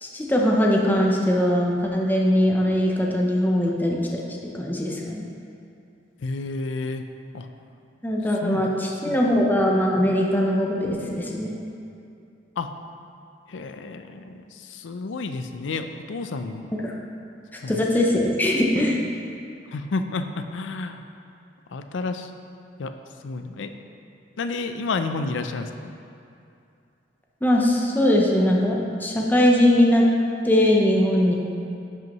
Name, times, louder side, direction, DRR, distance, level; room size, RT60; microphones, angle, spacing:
voice 1, 0.0-5.3 8.0-11.5 16.7-16.9 17.7-19.0 27.4-30.1 30.4-31.4, left 1 dB, 10° left, -2 dB, 0.7 m, -21 dB
voice 2, 6.2-7.0 7.3-7.5 8.4-8.6 9.0-9.2 12.6-12.7 13.5-16.7 17.6-17.8 19.7-21.0 21.7-22.3 22.8-22.9 23.2-23.7 24.4-25.9, left 3 dB, 80° left, 8 dB, 0.5 m, -30 dB
10.5 x 5.5 x 3.0 m, 2.6 s
head